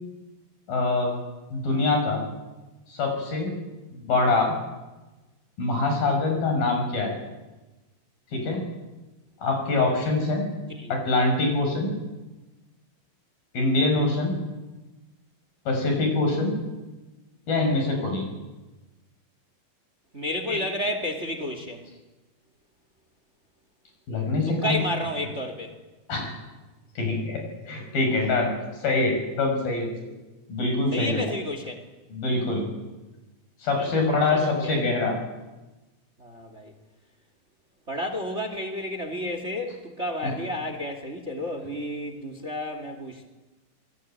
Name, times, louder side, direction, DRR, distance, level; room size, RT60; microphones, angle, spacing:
voice 1, 0.7-1.2 1.5-2.2 2.9-3.5 3.9-4.5 5.6-7.2 8.3-8.6 9.4-10.4 10.9-11.9 13.5-14.4 15.7-16.5 17.5-18.3 20.5-20.6 24.1-24.8 26.1-26.3 27.0-28.5 28.8-29.9 30.5-31.3 32.1-32.6 33.6-35.2 40.2-40.3, left 2 dB, 80° left, 3 dB, 7.9 m, -24 dB
voice 2, 20.1-21.9 24.5-25.7 30.9-31.9 33.8-34.0 34.3-34.7 36.2-36.7 37.9-43.3, left 1 dB, 20° right, 7 dB, 2.4 m, -31 dB
27.0 x 20.5 x 9.0 m, 1.1 s
omnidirectional pair, 4.1 m